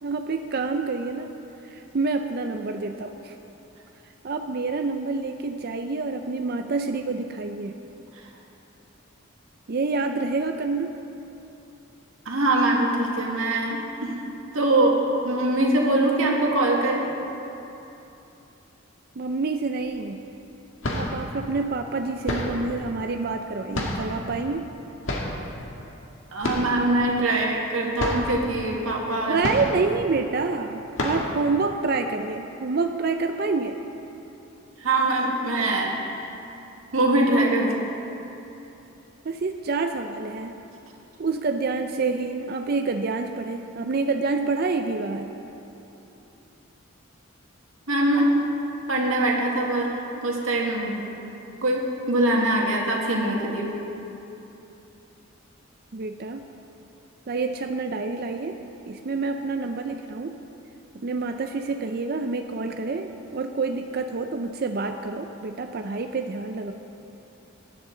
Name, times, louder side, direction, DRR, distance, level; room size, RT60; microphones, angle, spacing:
voice 1, 0.0-1.3 1.6-3.3 4.2-7.8 9.7-10.9 19.2-20.2 20.9-24.7 29.3-33.8 39.2-40.6 41.2-45.3 55.9-56.4 57.3-58.6 58.9-60.4 60.9-66.7, right 3 dB, 50° right, 5 dB, 0.5 m, -27 dB
voice 2, 12.3-14.2 14.5-15.0 15.2-17.0 26.3-29.4 34.8-36.3 36.9-37.7 47.9-48.3 48.9-51.0 51.6-53.7, right 1 dB, 80° right, -1 dB, 1.9 m, -23 dB
sound 1, 19.8-20.0 20.6-21.3 22.2-22.7 23.7-24.2 25.0-25.4 26.4-26.8 27.1-27.2 27.6-27.7 28.0-28.4 29.4-30.0 30.4-30.5 30.9-31.4, left 1 dB, 65° left, 1.7 m, -28 dB
18.0 x 11.0 x 3.9 m, 3.0 s
head